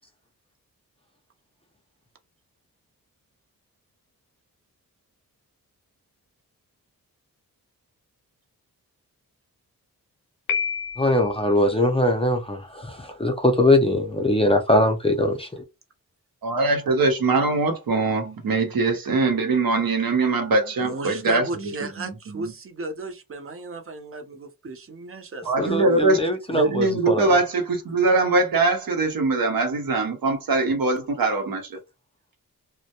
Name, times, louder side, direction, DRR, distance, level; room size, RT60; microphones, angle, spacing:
Piano, 10.5-11.4, left 6 dB, 85° left, 0.5 m, -28 dB
voice 1, 11.0-15.6 25.6-27.3, left 1 dB, 15° left, 0.5 m, -21 dB
voice 2, 16.4-21.5 21.8-22.5 25.4-26.2 26.5-31.8, right 3 dB, 75° right, 0.8 m, -22 dB
voice 3, 20.8-26.2, right 2 dB, 40° right, 0.6 m, -35 dB
2.1 x 2.1 x 2.8 m
cardioid pair, 75°, 35 cm